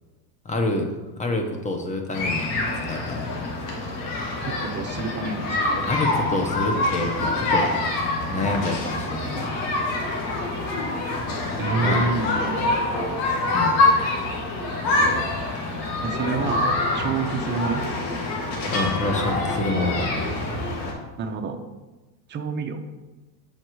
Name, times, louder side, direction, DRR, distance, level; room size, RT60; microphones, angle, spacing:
voice 1, 0.4-0.9 1.2-2.5 2.9-3.3 5.8-7.8 8.3-9.5 11.8-12.1 13.5-13.8 18.7-20.2, left 2 dB, 15° left, 4 dB, 0.9 m, -27 dB
sound 1, 2.1-20.9, left 2 dB, 75° left, 2.0 m, -25 dB
voice 2, 4.4-5.9 11.6-12.5 16.0-17.9 21.2-21.6 22.3-22.8, right 5 dB, 20° right, 5 dB, 0.6 m, -28 dB
7.2 x 4.9 x 4.6 m, 1.2 s
supercardioid pair, 130°, 50 cm